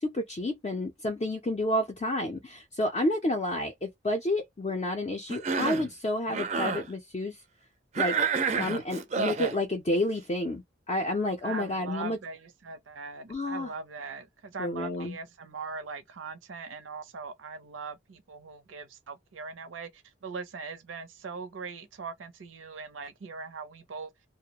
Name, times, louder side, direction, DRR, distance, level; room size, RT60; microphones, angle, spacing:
voice 1, 0.0-7.3 8.0-8.2 8.5-12.2 13.3-13.7 14.6-15.2, left 1 dB, 30° left, 0.4 m, -30 dB
Cough, 5.3-5.9 6.3-6.8 7.9-9.6, right 5 dB, 35° right, 0.4 m, -29 dB
voice 2, 11.4-24.1, right 4 dB, 90° right, 0.5 m, -41 dB
2.2 x 2.0 x 2.8 m
head